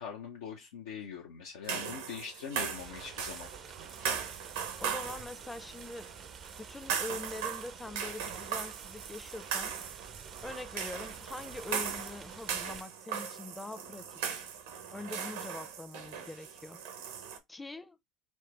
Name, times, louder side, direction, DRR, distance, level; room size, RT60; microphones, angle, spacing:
voice 1, 0.0-3.5, left 7 dB, 80° left, 0.6 m, -42 dB
sound 1, 1.6-17.4, right 7 dB, 80° right, 0.7 m, -39 dB
sound 2, 2.8-12.8, right 6 dB, 35° right, 0.4 m, -51 dB
voice 2, 4.8-6.1 6.6-9.7 10.4-14.4 14.9-17.0 17.5-18.0, left 2 dB, 15° left, 0.5 m, -43 dB
4.3 x 2.1 x 3.1 m
hypercardioid pair, 70°, 0 cm